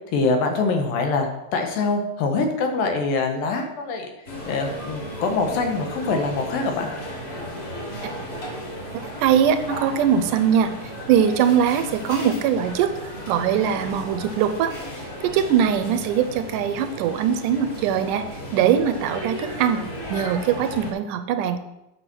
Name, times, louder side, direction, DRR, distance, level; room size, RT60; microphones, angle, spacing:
voice 1, 0.1-4.1 4.5-6.9, left 3 dB, 80° left, 4 dB, 3.0 m, -24 dB
sound 1, 4.3-20.9, equal, 30° left, 2.7 m, -35 dB
voice 2, 9.2-10.7 11.1-12.9 13.3-14.7 15.2-18.2 18.5-19.8 20.1-21.6, right 8 dB, 80° right, 10 dB, 2.1 m, -21 dB
8.2 x 6.5 x 6.1 m, 0.93 s
omnidirectional pair, 3.9 m